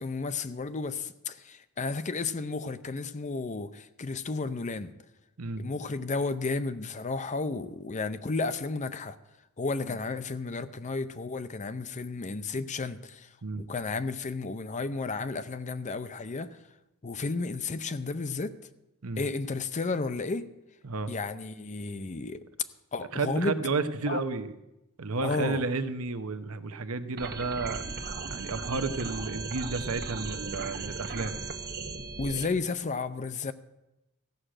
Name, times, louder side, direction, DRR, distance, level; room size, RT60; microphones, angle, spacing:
voice 1, 0.0-4.9 5.6-9.2 9.6-16.6 17.0-18.5 19.2-20.5 21.1-22.4 22.9-23.6 24.1-24.2 25.2-25.6 32.2-33.5, left 3 dB, 35° left, 12 dB, 0.6 m, -33 dB
voice 2, 23.1-24.5 25.0-27.8 28.3-31.3, right 3 dB, 70° right, 10 dB, 0.9 m, -32 dB
sound 1, 27.2-32.5, right 3 dB, 45° right, 1.3 m, -37 dB
14.5 x 6.5 x 8.7 m, 0.93 s
head